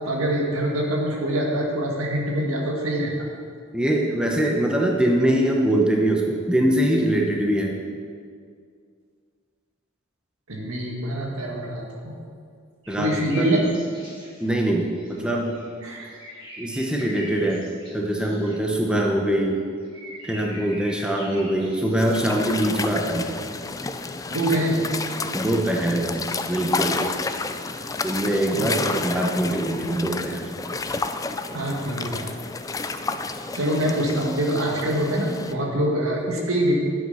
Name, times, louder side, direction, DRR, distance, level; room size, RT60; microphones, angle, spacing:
voice 1, 0.0-3.1 10.5-12.2 13.0-13.7 15.8-16.1 24.3-24.8 28.5-28.9 31.5-32.2 33.5-36.7, right 1 dB, 75° right, -1 dB, 2.1 m, -25 dB
voice 2, 3.7-7.8 12.9-13.6 14.4-15.5 16.6-17.7 17.9-19.6 20.2-23.3 25.3-27.1 28.0-30.8, right 1 dB, 5° right, 0 dB, 0.9 m, -23 dB
sound 1, 12.8-14.5 14.8-18.6 19.4-22.5 23.5-23.6, equal, 25° right, 3.3 m, -43 dB
sound 2, 22.0-35.5, left 3 dB, 15° left, 0.4 m, -31 dB
11.5 x 8.0 x 5.7 m, 2.2 s
head